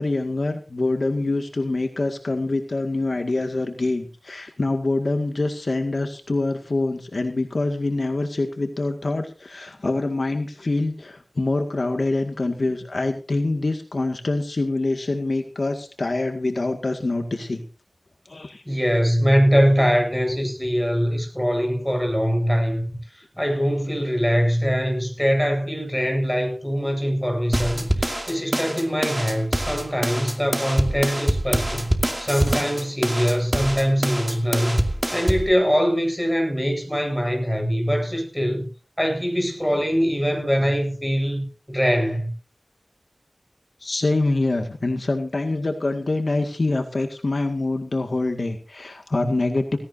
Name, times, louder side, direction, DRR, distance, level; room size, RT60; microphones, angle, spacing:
voice 1, 0.0-17.6 18.3-18.6 43.8-49.8, left 2 dB, 60° left, 2.0 m, -25 dB
voice 2, 18.7-31.9 32.2-34.8 35.1-38.7 39.0-42.3, equal, 5° left, 7.9 m, -22 dB
sound 1, 27.5-35.5, right 1 dB, 15° right, 2.6 m, -25 dB
18.0 x 16.5 x 2.7 m
wide cardioid pair, 55°, 0 cm